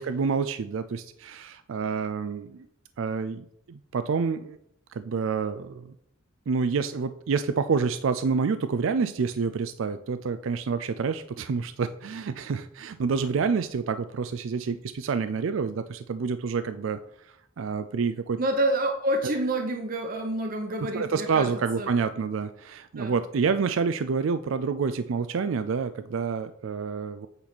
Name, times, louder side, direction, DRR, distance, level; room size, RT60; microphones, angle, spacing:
voice 1, 0.0-2.7 3.0-4.6 4.9-5.9 6.5-18.4 20.9-27.3, right 5 dB, 75° right, 11 dB, 0.4 m, -28 dB
voice 2, 18.4-21.5 21.8-21.9 23.0-23.2, right 1 dB, 45° right, 3 dB, 0.9 m, -28 dB
8.7 x 4.1 x 6.0 m, 0.71 s
head